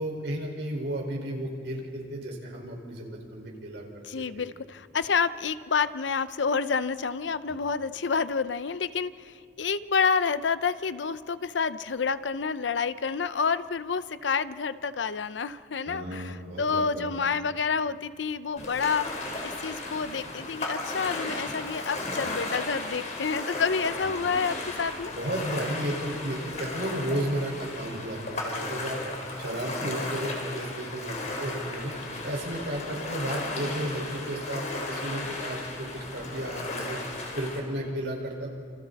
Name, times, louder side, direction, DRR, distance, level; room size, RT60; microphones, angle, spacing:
voice 1, 0.0-3.8 4.2-4.4 7.4-7.6 15.9-17.1 24.0-24.1 25.1-29.0 29.4-31.9 32.2-37.0 37.3-38.5, right 1 dB, 75° right, -1 dB, 5.1 m, -33 dB
voice 2, 4.0-25.1, left 5 dB, 85° left, 14 dB, 0.7 m, -29 dB
Ocean, 18.6-37.6, left 2 dB, 40° left, 4.0 m, -35 dB
29.5 x 28.0 x 4.2 m, 2.5 s
head